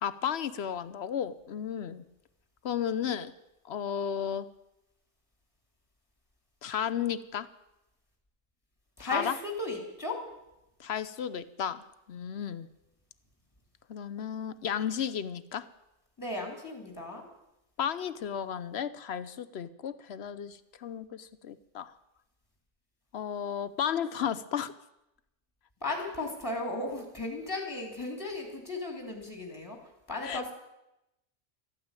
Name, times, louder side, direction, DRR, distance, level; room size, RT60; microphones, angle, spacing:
voice 1, 0.0-2.0 2.6-3.3 3.7-4.5 6.6-7.5 9.0-9.3 10.8-12.7 13.9-15.7 17.8-21.9 23.1-24.7 30.2-30.4, left 8 dB, 65° left, 14 dB, 0.9 m, -33 dB
voice 2, 9.0-10.2 16.2-17.2 25.8-29.8 30.1-30.5, left 2 dB, 15° left, 1 dB, 3.0 m, -35 dB
13.5 x 9.4 x 8.9 m, 0.90 s
omnidirectional pair, 1.3 m